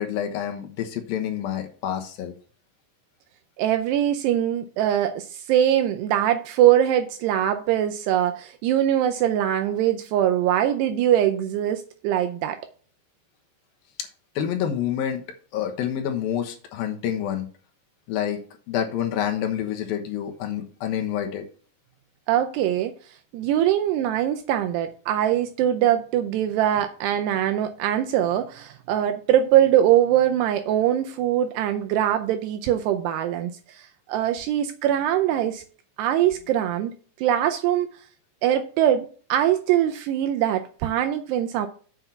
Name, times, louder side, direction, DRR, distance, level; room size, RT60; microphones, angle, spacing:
voice 1, 0.0-2.3 14.4-15.2 15.5-17.5 18.1-18.4 18.7-21.5, left 9 dB, 70° left, 2.5 m, -28 dB
voice 2, 3.6-12.6 22.3-22.9 23.3-35.6 36.0-36.9 37.2-37.9 38.4-41.7, right 11 dB, 80° right, 2.5 m, -22 dB
7.8 x 5.4 x 5.8 m
omnidirectional pair, 5.3 m